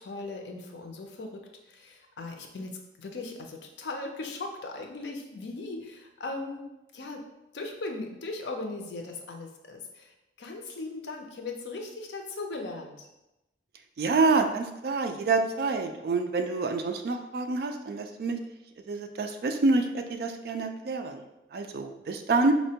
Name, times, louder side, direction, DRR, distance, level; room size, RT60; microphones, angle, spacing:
voice 1, 0.0-7.2 7.5-13.1, left 3 dB, 75° left, 3 dB, 0.5 m, -38 dB
voice 2, 14.0-18.4 18.9-21.2 21.5-22.5, right 3 dB, 55° right, 6 dB, 0.3 m, -27 dB
4.3 x 2.1 x 2.8 m, 0.94 s
head